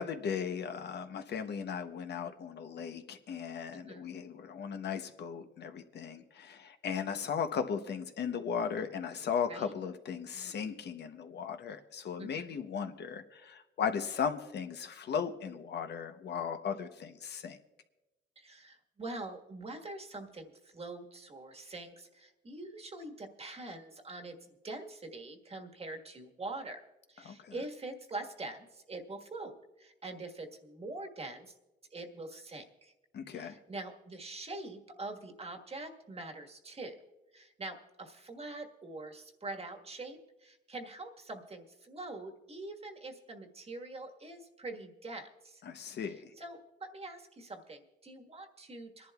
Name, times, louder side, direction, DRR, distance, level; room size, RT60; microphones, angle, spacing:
voice 1, 0.0-17.6 27.2-27.5 33.1-33.5 45.6-46.3, left 7 dB, 60° left, 7 dB, 0.8 m, -37 dB
voice 2, 3.7-4.1 9.5-9.7 12.2-12.6 18.3-26.8 27.1-31.5 31.9-32.9 33.3-37.0 37.3-45.6 46.0-49.1, right 2 dB, 30° right, 4 dB, 1.5 m, -44 dB
27.0 x 11.0 x 2.3 m, 1.0 s
cardioid pair, 90°, 20 cm